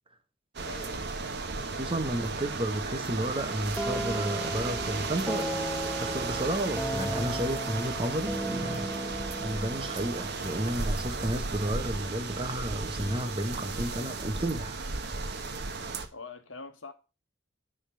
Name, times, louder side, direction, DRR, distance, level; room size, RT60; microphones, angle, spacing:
sound 1, 0.5-16.1, right 3 dB, 55° right, 1.1 m, -35 dB
voice 1, 0.6-1.7 16.1-16.9, left 4 dB, 75° left, 1.4 m, -45 dB
voice 2, 1.7-5.6 6.0-14.8, right 1 dB, 25° right, 1.1 m, -32 dB
sound 2, 3.8-11.5, equal, ahead, 0.5 m, -36 dB
10.5 x 3.8 x 6.2 m
head